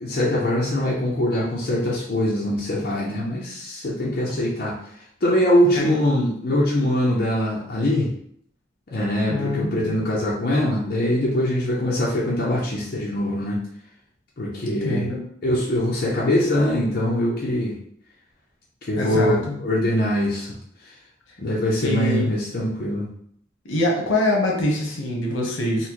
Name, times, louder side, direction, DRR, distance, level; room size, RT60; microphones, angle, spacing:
voice 1, 0.0-4.8 5.2-8.1 8.9-13.6 14.4-15.0 15.4-17.8 18.8-20.6 21.4-23.1, left 1 dB, 50° left, -5 dB, 0.6 m, -22 dB
voice 2, 9.3-10.0 14.8-15.2 19.0-19.6 21.8-22.3 23.6-25.9, left 1 dB, 75° left, -1 dB, 0.9 m, -24 dB
4.1 x 2.1 x 2.9 m, 0.67 s
head